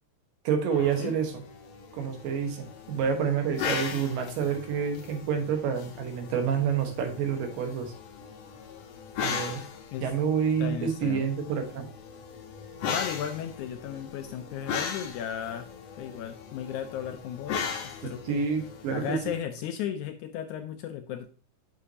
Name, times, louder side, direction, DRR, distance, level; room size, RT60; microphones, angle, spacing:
voice 1, 0.4-1.4 1.9-7.9 9.2-9.6 10.0-11.9 18.2-19.2, right 7 dB, 80° right, 5 dB, 2.9 m, -28 dB
sound 1, 0.7-19.4, left 6 dB, 65° left, 1.7 m, -38 dB
voice 2, 10.6-11.3 12.9-15.7 16.0-18.4 18.9-21.3, left 9 dB, 80° left, 7 dB, 1.8 m, -35 dB
8.4 x 6.0 x 2.8 m, 0.37 s
omnidirectional pair, 3.9 m